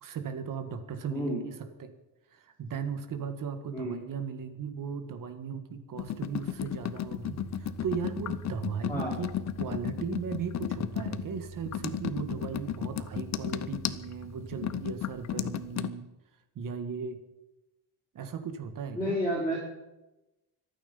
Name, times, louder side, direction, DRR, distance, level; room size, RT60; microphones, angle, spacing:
voice 1, 0.0-1.9 2.3-9.3 9.6-16.1 16.6-17.2 18.1-19.2, right 6 dB, 50° right, 9 dB, 1.7 m, -37 dB
voice 2, 1.1-1.4 3.7-4.0 8.9-9.2 18.9-19.6, equal, 5° left, -8 dB, 4.9 m, -30 dB
sound 1, 6.0-15.9, left 11 dB, 40° left, 0.7 m, -34 dB
sound 2, 7.2-15.0, right 5 dB, 20° right, 6.3 m, -45 dB
25.0 x 9.4 x 5.5 m, 1.0 s
cardioid pair, 175°, 41 cm